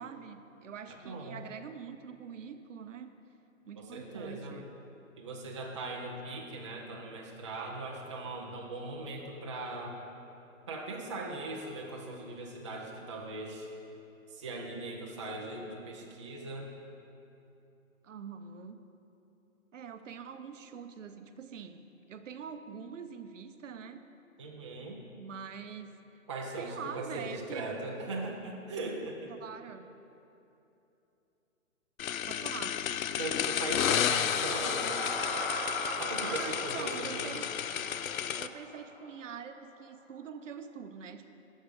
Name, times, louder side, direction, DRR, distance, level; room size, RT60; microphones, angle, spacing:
voice 1, 0.0-3.1 3.7-4.7 18.0-18.8 19.7-24.0 25.1-25.9 26.6-27.7 29.3-29.9 32.3-32.8 33.6-33.7 36.3-37.5 38.4-41.3, right 7 dB, 65° right, 9 dB, 0.7 m, -44 dB
voice 2, 0.9-1.4 3.8-4.6 5.2-10.0 10.7-13.7 14.3-16.7 24.4-25.0 26.3-29.3 33.2-35.0 36.0-37.3, right 2 dB, 25° right, -1 dB, 0.4 m, -39 dB
sound 1, 32.0-38.5, left 9 dB, 80° left, 0.5 m, -32 dB
sound 2, 33.2-39.4, left 2 dB, 35° left, 1.6 m, -39 dB
9.7 x 6.4 x 5.2 m, 2.8 s
hypercardioid pair, 150°, 41 cm